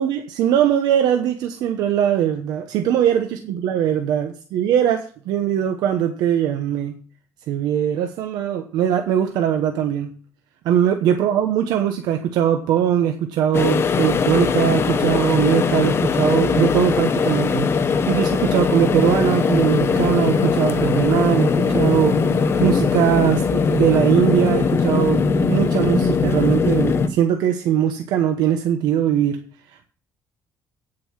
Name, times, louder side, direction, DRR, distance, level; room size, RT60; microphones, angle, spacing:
voice 1, 0.0-7.0 7.5-10.1 10.6-22.3 22.6-29.4, right 10 dB, 90° right, 1.0 m, -21 dB
sound 1, 13.5-27.1, left 5 dB, 40° left, 1.0 m, -20 dB
9.3 x 7.7 x 5.8 m
cardioid pair, 125°, 7 cm